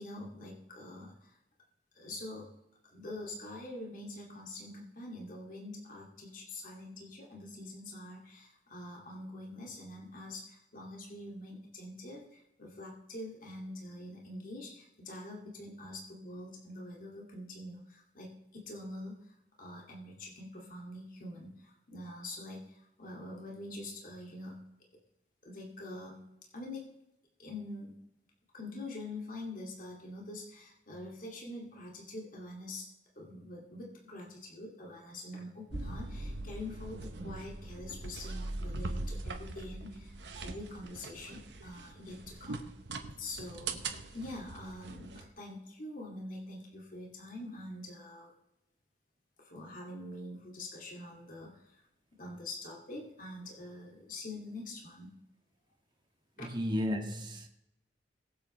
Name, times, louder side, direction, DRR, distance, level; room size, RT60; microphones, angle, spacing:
voice 1, 0.0-1.4 1.9-2.5 2.9-24.6 25.4-26.2 26.5-26.9 27.4-27.9 28.5-32.9 33.2-42.7 43.2-43.8 44.1-48.3 49.4-51.8 52.2-55.1 56.4-56.5, left 1 dB, 50° left, 2.4 m, -45 dB
sound 1, 35.7-45.3, right 2 dB, 75° right, 1.2 m, -41 dB
voice 2, 56.4-57.5, equal, 25° right, 1.7 m, -33 dB
22.0 x 7.9 x 3.3 m
head